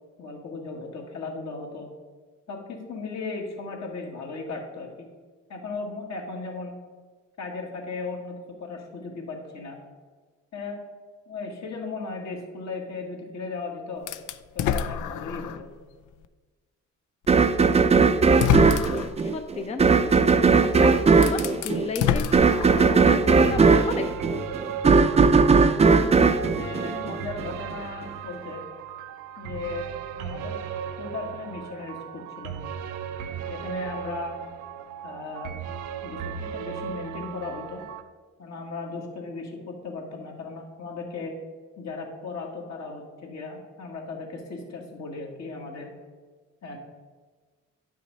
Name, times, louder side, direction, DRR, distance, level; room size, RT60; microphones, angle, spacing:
voice 1, 0.2-1.9 2.5-5.1 5.5-6.8 7.4-8.4 8.6-9.8 10.5-10.8 11.3-14.1 14.6-15.7 25.9-28.6 29.4-29.9 30.2-30.6 31.0-32.6 33.5-34.3 35.0-35.5 36.0-37.8 38.4-41.3 41.8-45.9 46.6-46.8, left 3 dB, 65° left, 0 dB, 2.0 m, -36 dB
sound 1, 14.1-15.7 16.2-16.3 17.5-17.6 18.2-19.2 20.6-20.7 21.1-23.1, left 8 dB, 85° left, 0.5 m, -27 dB
sound 2, 17.3-27.5, right 4 dB, 20° right, 0.5 m, -19 dB
voice 2, 19.2-20.1 20.4-20.9 21.2-22.4 22.7-24.1, left 3 dB, 20° left, 6 dB, 0.5 m, -33 dB
sound 3, 22.5-38.0, right 8 dB, 85° right, 0.6 m, -36 dB
10.0 x 6.2 x 4.1 m, 1.4 s
cardioid pair, 90°, 30 cm